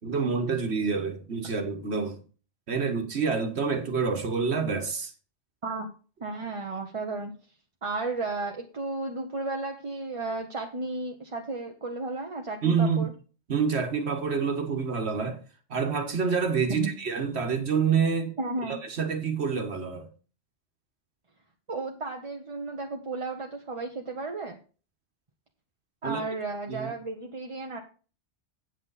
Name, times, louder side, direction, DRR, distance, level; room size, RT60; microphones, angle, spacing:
voice 1, 0.0-2.2 2.7-5.1 12.6-13.1 13.5-15.4 15.7-18.3 18.7-20.1 26.0-26.2 26.7-26.9, right 5 dB, 65° right, 1.6 m, -27 dB
voice 2, 6.2-7.3 7.8-13.1 16.7-16.9 18.4-18.8 21.7-24.6 26.0-27.8, right 3 dB, 30° right, 0.9 m, -33 dB
8.7 x 8.0 x 4.0 m
omnidirectional pair, 1.2 m